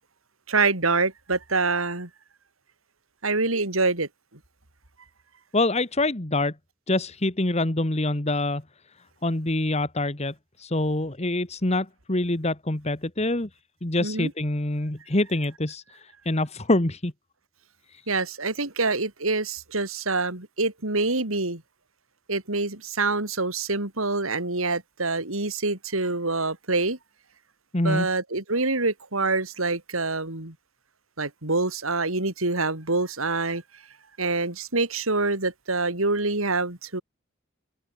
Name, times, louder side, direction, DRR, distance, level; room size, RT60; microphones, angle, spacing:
voice 1, 0.5-2.1 3.2-4.1 14.0-14.3 18.1-21.6 22.3-27.0 27.8-30.5 31.2-33.6 34.2-37.0, right 3 dB, 90° right, 4.2 m, -26 dB
voice 2, 5.5-6.5 6.9-8.6 9.2-13.5 13.8-17.1 17.9-18.0 27.7-28.1, left 2 dB, 30° left, 1.7 m, -25 dB
open air
head